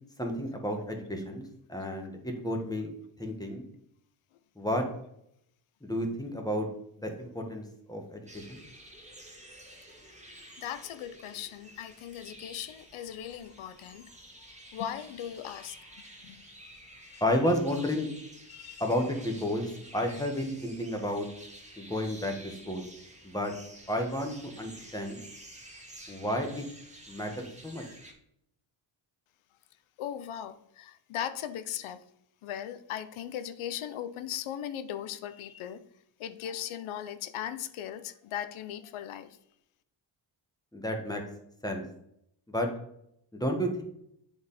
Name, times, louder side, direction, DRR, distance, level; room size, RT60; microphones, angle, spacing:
voice 1, 0.2-2.9 3.2-3.7 4.6-4.8 5.8-6.7 7.0-7.6 7.9-8.6 17.2-18.1 18.8-21.3 21.8-22.9 23.2-23.5 23.9-25.2 26.1-26.6 27.1-27.8 40.7-41.2 41.6-41.8 42.5-42.7 43.3-43.8, equal, 10° left, 3 dB, 1.3 m, -31 dB
sound 1, 8.3-28.1, right 1 dB, 15° right, 1.2 m, -51 dB
voice 2, 10.6-14.2 14.7-16.0 16.2-16.6 17.0-17.2 18.5-18.9 30.0-32.0 32.4-35.8 36.2-39.4, left 10 dB, 90° left, 13 dB, 0.6 m, -38 dB
7.8 x 3.6 x 4.2 m, 0.74 s
cardioid pair, 80°, 48 cm